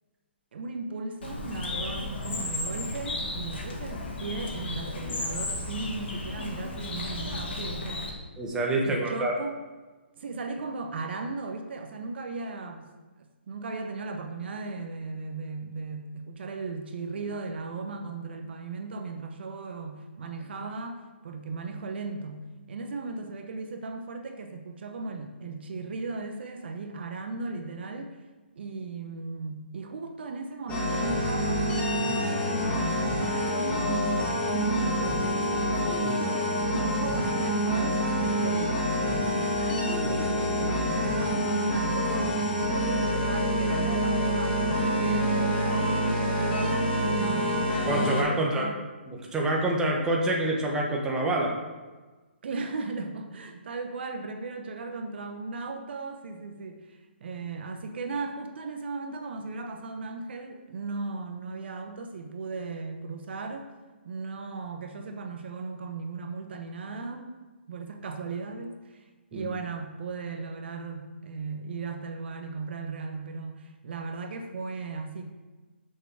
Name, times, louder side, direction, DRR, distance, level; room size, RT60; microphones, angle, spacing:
voice 1, 0.5-8.1 8.8-9.6 10.2-12.9 13.5-28.2 28.6-34.0 34.4-38.0 38.4-42.3 42.7-46.8 47.1-47.6 48.3-48.8 52.4-63.7 64.0-67.3 67.7-69.0 69.3-75.2, right 3 dB, 60° right, 5 dB, 0.9 m, -37 dB
Bird, 1.2-8.1, left 2 dB, 60° left, 1.8 m, -34 dB
voice 2, 8.4-9.3 47.9-48.7 49.1-51.5 69.3-69.5, right 1 dB, 10° right, -1 dB, 1.2 m, -26 dB
sound 1, 30.7-48.2, equal, 15° left, 1.9 m, -27 dB
6.5 x 5.2 x 5.9 m, 1.3 s
hypercardioid pair, 145°, 6 cm